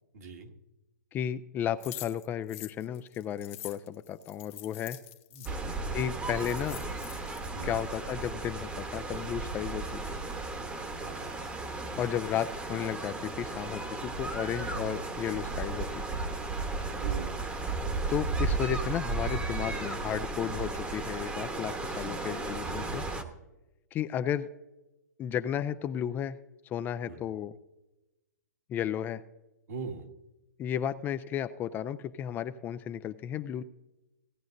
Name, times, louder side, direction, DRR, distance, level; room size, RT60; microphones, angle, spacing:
voice 1, 0.1-0.5 5.3-5.8 7.5-7.8 11.0-11.4 16.9-17.4 22.0-22.2 22.7-23.0 27.0-27.2 29.7-30.1, right 4 dB, 65° right, 4 dB, 1.8 m, -42 dB
voice 2, 1.1-5.0 5.9-6.8 7.6-10.2 12.0-16.2 18.1-23.0 23.9-24.5 25.2-26.4 26.6-27.5 28.7-29.2 30.6-33.6, left 10 dB, 20° left, 12 dB, 0.4 m, -33 dB
sound 1, 1.8-5.5 6.0-6.1 6.3-7.4, left 15 dB, 45° left, 0.7 m, -45 dB
sound 2, 5.4-23.2, right 3 dB, 10° right, 1.0 m, -35 dB
16.5 x 9.5 x 2.6 m, 0.98 s
hypercardioid pair, 135°, 9 cm